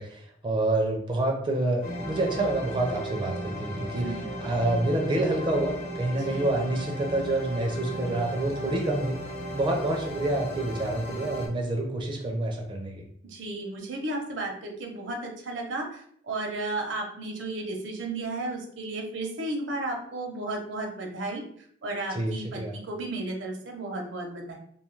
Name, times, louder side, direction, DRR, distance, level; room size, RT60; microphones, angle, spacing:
voice 1, 0.0-4.1 4.4-9.2 9.5-13.0 22.1-22.7, right 1 dB, 25° right, 0 dB, 0.4 m, -28 dB
sound 1, 1.8-11.5, right 1 dB, 50° left, 0.8 m, -36 dB
voice 2, 4.0-4.4 6.3-6.5 13.2-21.4 21.8-24.6, right 2 dB, 75° right, 2 dB, 0.6 m, -34 dB
2.6 x 2.3 x 3.0 m, 0.64 s
head